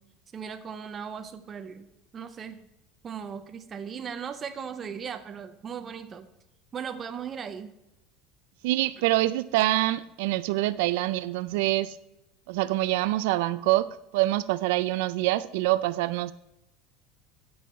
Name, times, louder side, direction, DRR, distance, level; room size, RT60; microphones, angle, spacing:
voice 1, 0.3-2.7 3.0-6.3 6.7-7.7, right 7 dB, 20° right, 8 dB, 0.6 m, -37 dB
voice 2, 8.6-12.0 12.5-16.3, right 17 dB, 80° right, 15 dB, 0.4 m, -25 dB
15.5 x 5.5 x 4.3 m, 0.90 s
cardioid pair, 170°, 0 cm